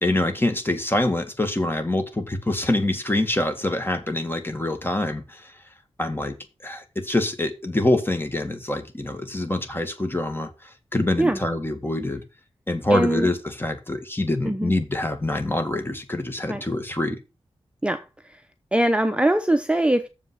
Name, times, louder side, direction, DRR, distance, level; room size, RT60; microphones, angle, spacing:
voice 1, 0.0-5.5 6.0-6.4 6.6-12.2 12.7-17.2, left 1 dB, 20° left, 2.0 m, -25 dB
voice 2, 12.9-13.3 14.4-14.7 16.5-16.6 17.8-18.4 18.7-20.1, right 1 dB, 10° right, 0.7 m, -22 dB
7.3 x 5.3 x 6.2 m
cardioid pair, 60°, 11 cm